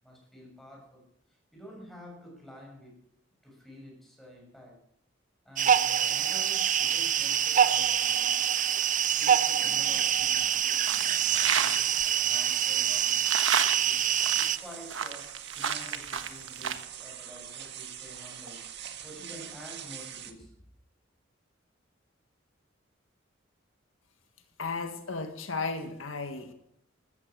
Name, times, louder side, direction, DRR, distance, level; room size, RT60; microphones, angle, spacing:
voice 1, 0.0-3.0 3.4-4.8 5.4-8.5 9.2-11.8 12.2-18.6 19.0-20.5, equal, ahead, -1 dB, 7.2 m, -49 dB
sound 1, 5.6-14.6, right 9 dB, 40° right, 0.6 m, -25 dB
sound 2, 7.8-20.3, right 10 dB, 60° right, 1.7 m, -43 dB
sound 3, 10.7-11.8 12.9-16.8, right 7 dB, 75° right, 1.4 m, -30 dB
voice 2, 24.6-26.5, left 4 dB, 85° left, 7 dB, 1.7 m, -34 dB
14.5 x 14.5 x 6.2 m, 0.77 s
head